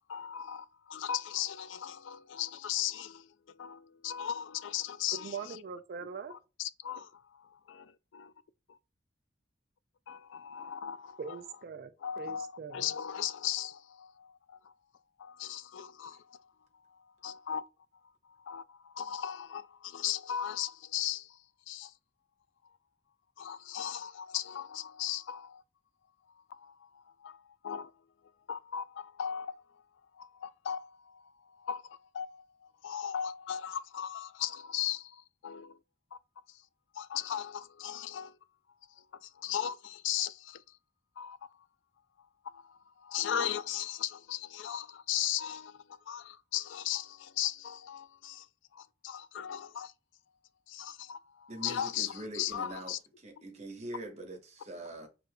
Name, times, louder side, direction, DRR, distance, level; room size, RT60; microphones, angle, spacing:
voice 1, 0.0-3.3 3.6-5.6 6.3-7.4 10.1-11.2 12.0-14.6 15.2-16.4 17.2-17.6 18.4-21.4 21.7-21.9 23.4-25.6 26.5-27.9 28.5-29.6 30.2-31.2 31.6-32.4 32.8-35.8 36.1-36.2 37.0-38.3 39.2-40.6 41.2-41.4 42.4-48.5 48.7-49.9 50.7-53.0, left 10 dB, 75° left, 0.3 m, -37 dB
voice 2, 5.1-6.3 11.2-12.9, right 5 dB, 50° right, 0.4 m, -42 dB
voice 3, 51.5-52.9 53.2-55.1, right 1 dB, 35° right, 1.0 m, -43 dB
6.4 x 2.6 x 2.2 m
head